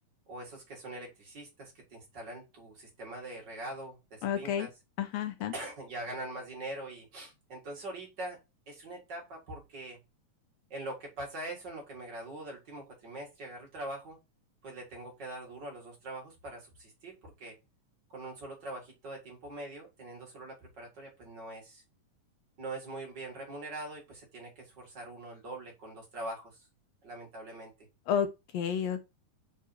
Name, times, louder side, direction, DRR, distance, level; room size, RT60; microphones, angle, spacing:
voice 1, 0.3-4.7 5.5-8.4 8.7-10.0 10.7-14.2 14.6-17.6 18.1-21.8 22.6-26.6 27.0-27.7, right 2 dB, 40° right, 2.2 m, -43 dB
voice 2, 4.2-4.7 5.0-5.5 28.1-28.3 28.5-29.1, left 8 dB, 75° left, 1.5 m, -30 dB
5.1 x 4.6 x 4.3 m
omnidirectional pair, 3.6 m